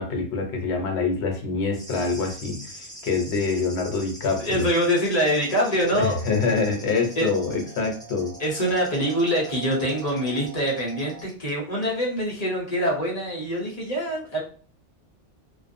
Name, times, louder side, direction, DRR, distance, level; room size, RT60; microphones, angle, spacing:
voice 1, 0.0-4.7 5.8-8.3, left 4 dB, 70° left, 2 dB, 1.0 m, -26 dB
sound 1, 1.7-11.5 11.8-11.9, equal, 5° left, 0.4 m, -44 dB
voice 2, 4.4-6.1 6.4-6.5 7.2-7.3 8.4-14.4, equal, 40° left, -3 dB, 0.7 m, -24 dB
sound 2, 5.0-11.2, right 8 dB, 75° right, 1.1 m, -44 dB
2.4 x 2.2 x 2.5 m, 0.43 s
omnidirectional pair, 1.2 m